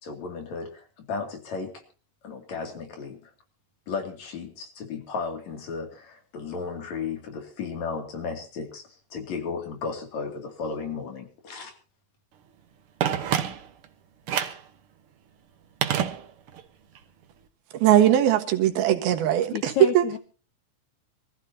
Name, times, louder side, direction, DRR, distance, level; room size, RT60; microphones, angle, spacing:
voice 1, 0.0-1.8 2.2-3.3 3.9-11.7, left 5 dB, 50° left, 3.7 m, -34 dB
Telephone, 13.0-13.9 14.3-14.7 15.8-16.7 17.0-17.1, right 9 dB, 65° right, 1.3 m, -27 dB
voice 2, 17.8-20.0, right 11 dB, 90° right, 3.4 m, -20 dB
voice 3, 19.5-20.2, left 9 dB, 70° left, 1.9 m, -29 dB
25.0 x 15.0 x 2.8 m
omnidirectional pair, 4.2 m